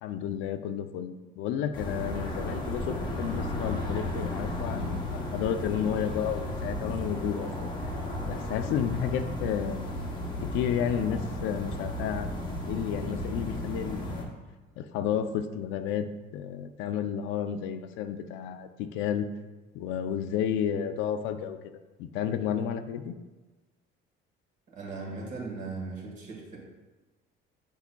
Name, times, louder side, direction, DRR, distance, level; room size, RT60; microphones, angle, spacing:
voice 1, 0.0-7.7 8.3-9.9 10.4-12.3 12.7-14.3 14.8-16.1 16.3-19.3 19.7-21.6 22.0-23.1, left 9 dB, 75° left, 9 dB, 0.5 m, -31 dB
sound 1, 1.7-14.3, left 1 dB, 25° left, 0.8 m, -34 dB
sound 2, 2.3-15.5, right 3 dB, 15° right, 0.7 m, -48 dB
voice 2, 24.7-26.6, right 3 dB, 40° right, -1 dB, 1.5 m, -38 dB
8.2 x 5.6 x 2.2 m, 1.2 s
cardioid pair, 180°, 20 cm